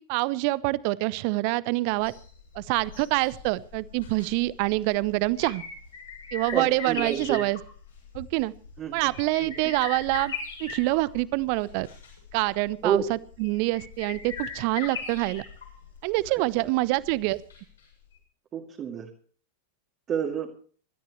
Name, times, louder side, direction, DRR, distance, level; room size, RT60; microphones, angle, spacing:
voice 1, 0.0-2.1 2.5-5.6 6.3-7.6 8.1-8.5 8.9-10.3 10.6-11.9 12.3-13.0 13.4-15.4 16.0-17.4, right 21 dB, 45° right, 20 dB, 0.8 m, -26 dB
sound 1, 1.9-17.8 18.1-18.2, left 5 dB, 65° left, 6.7 m, -40 dB
voice 2, 6.5-7.4 8.8-9.1 9.4-9.5 12.8-13.0 16.6-16.8 18.5-19.1 20.1-20.5, right 8 dB, 30° right, 0 dB, 2.2 m, -29 dB
25.0 x 13.5 x 3.1 m, 0.43 s
figure-of-eight pair, 90°, 0 cm